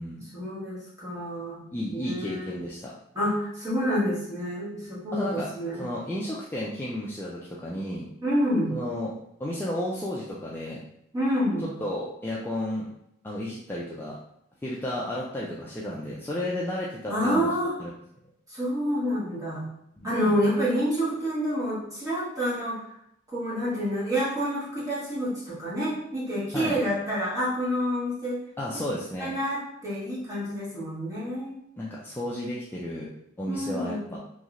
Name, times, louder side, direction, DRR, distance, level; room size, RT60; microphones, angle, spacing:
voice 1, 0.3-1.6 1.9-2.5 3.1-5.9 8.2-8.7 11.1-11.7 17.1-17.7 18.5-19.6 20.0-22.8 23.3-28.4 28.7-28.8 29.2-31.6 33.5-34.1, equal, 20° right, -9 dB, 1.3 m, -28 dB
voice 2, 1.7-2.9 5.1-5.5 5.8-8.1 8.7-10.8 11.8-12.9 13.2-14.2 14.6-17.5 17.8-17.9 20.0-20.4 26.5-26.8 28.6-29.3 31.8-33.1 33.4-34.2, left 1 dB, 10° left, -6 dB, 0.3 m, -32 dB
3.1 x 2.7 x 2.4 m, 0.77 s
head